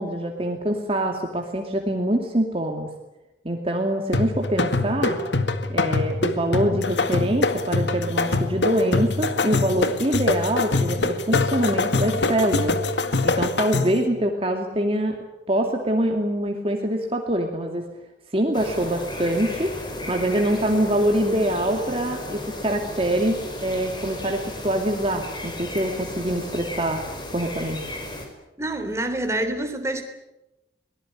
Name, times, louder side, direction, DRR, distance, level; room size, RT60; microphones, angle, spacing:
voice 1, 0.0-2.9 3.4-5.2 5.7-12.8 13.2-15.2 15.5-17.8 18.3-19.7 20.1-27.0 27.3-27.8, right 1 dB, 30° right, 3 dB, 2.5 m, -24 dB
sound 1, 4.1-14.1, left 3 dB, 90° left, 1.9 m, -24 dB
sound 2, 18.5-28.3, left 1 dB, 25° left, 5.2 m, -34 dB
voice 2, 28.6-30.0, right 1 dB, 15° right, 5 dB, 3.4 m, -27 dB
23.5 x 19.5 x 10.0 m, 0.96 s
head